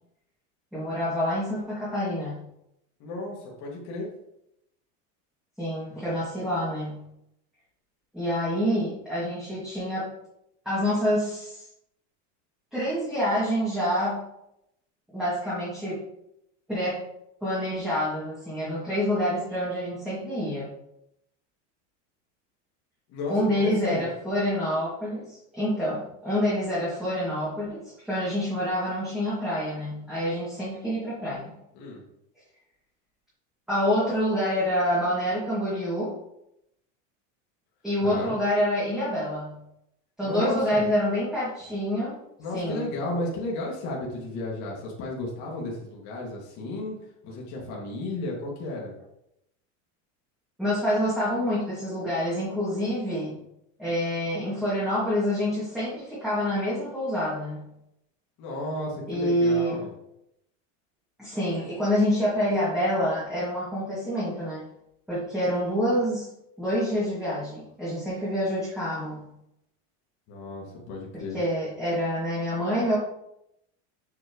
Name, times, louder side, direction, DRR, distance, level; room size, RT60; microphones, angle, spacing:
voice 1, 0.7-2.3 5.6-7.0 8.1-10.1 10.6-11.7 12.7-14.2 15.1-16.0 16.7-17.0 17.4-20.7 23.3-31.5 33.7-36.1 37.8-39.6 40.2-42.2 42.5-42.8 50.6-53.4 53.8-57.7 59.1-59.8 61.2-64.6 65.1-66.3 66.6-69.3 71.3-73.0, equal, ahead, -10 dB, 2.4 m, -27 dB
voice 2, 3.0-4.1 23.1-24.0 31.7-32.0 38.0-38.3 40.2-40.8 42.4-47.0 47.2-49.0 58.4-59.9 70.3-71.4, left 2 dB, 50° left, -3 dB, 2.3 m, -33 dB
7.7 x 6.1 x 3.2 m, 0.81 s
supercardioid pair, 150°, 38 cm